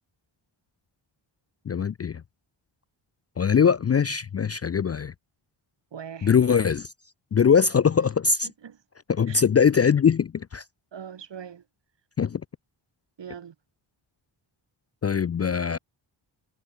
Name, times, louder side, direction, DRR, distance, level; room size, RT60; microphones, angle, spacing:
voice 1, 1.7-2.2 3.4-5.1 6.2-6.9 7.3-8.5 9.1-10.6 12.2-12.4 15.0-15.8, left 6 dB, 35° left, 0.4 m, -22 dB
voice 2, 5.9-6.3 8.4-8.8 9.3-9.4 10.9-11.6 13.2-13.6, right 8 dB, 60° right, 2.0 m, -41 dB
wide cardioid pair, 145°, 48 cm